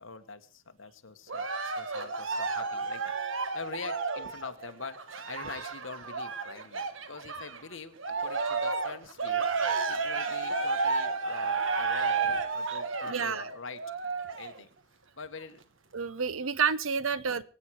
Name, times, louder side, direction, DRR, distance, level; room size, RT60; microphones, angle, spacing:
voice 1, 0.0-3.1 3.5-5.0 5.3-9.5 9.9-13.8 14.4-14.7 15.2-15.6 17.2-17.4, left 4 dB, 75° left, 8 dB, 1.4 m, -44 dB
Cheering, 1.3-7.6 8.0-14.6 15.2-15.3, right 4 dB, 70° right, 1.4 m, -32 dB
voice 2, 13.1-13.4 15.9-17.4, right 6 dB, 90° right, 17 dB, 0.8 m, -29 dB
24.0 x 8.9 x 4.8 m, 0.38 s
head